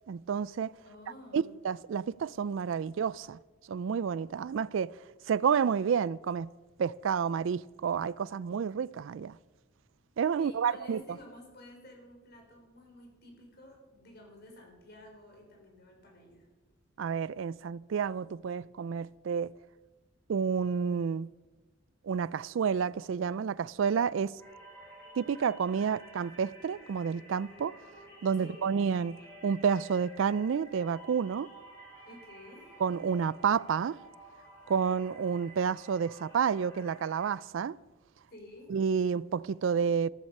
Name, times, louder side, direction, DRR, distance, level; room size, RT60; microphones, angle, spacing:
voice 1, 0.1-0.7 1.3-3.4 3.7-4.9 5.3-6.5 6.8-9.3 10.2-11.0 17.0-19.5 20.3-21.3 22.0-24.4 25.2-27.7 28.2-29.2 29.4-31.5 32.8-34.0 34.7-37.8 38.7-40.1, right 6 dB, 65° right, 0.3 m, -30 dB
voice 2, 0.9-1.6 10.4-16.5 28.4-28.7 32.0-32.7 38.3-38.7, left 1 dB, 50° left, 4.2 m, -52 dB
sound 1, 24.4-37.3, right 1 dB, 10° left, 3.8 m, -52 dB
14.0 x 13.5 x 5.4 m
head